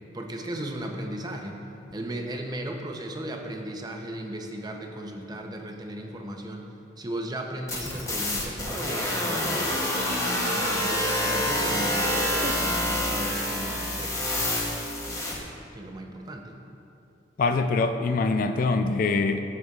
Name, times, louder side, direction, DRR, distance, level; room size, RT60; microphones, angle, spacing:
voice 1, 0.1-1.6 1.9-6.7 7.0-9.8 10.5-14.2 15.7-16.5, right 1 dB, 25° right, 2 dB, 0.6 m, -36 dB
sound 1, 7.7-15.4, left 1 dB, 20° left, 0.9 m, -27 dB
sound 2, 8.6-12.5, right 2 dB, 60° right, 0.6 m, -35 dB
voice 2, 17.4-19.6, left 3 dB, 50° left, 8 dB, 0.3 m, -24 dB
13.5 x 6.1 x 2.4 m, 2.7 s
head